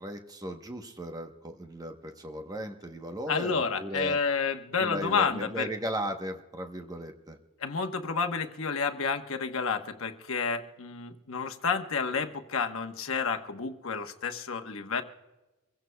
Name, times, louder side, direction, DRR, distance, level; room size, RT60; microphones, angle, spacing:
voice 1, 0.0-4.2 4.8-7.4, equal, 20° right, 5 dB, 1.0 m, -36 dB
voice 2, 3.3-5.7 7.6-15.0, left 5 dB, 70° left, 5 dB, 1.1 m, -30 dB
25.0 x 16.0 x 2.3 m, 1.1 s
head